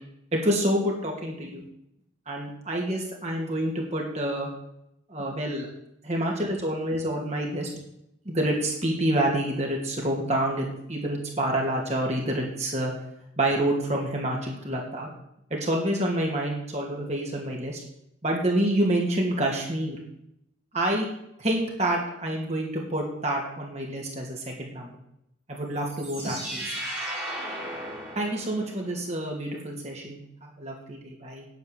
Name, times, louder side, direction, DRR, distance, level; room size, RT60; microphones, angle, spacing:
voice 1, 0.3-1.6 2.3-4.5 5.1-5.7 6.0-7.7 8.2-12.9 13.4-15.1 15.5-17.8 18.2-20.0 20.7-21.1 21.4-25.0 25.5-26.7 28.2-31.5, right 1 dB, 35° right, -1 dB, 2.6 m, -28 dB
sound 1, 25.8-28.9, right 1 dB, 10° right, 5.6 m, -35 dB
9.7 x 9.6 x 7.1 m, 0.78 s
head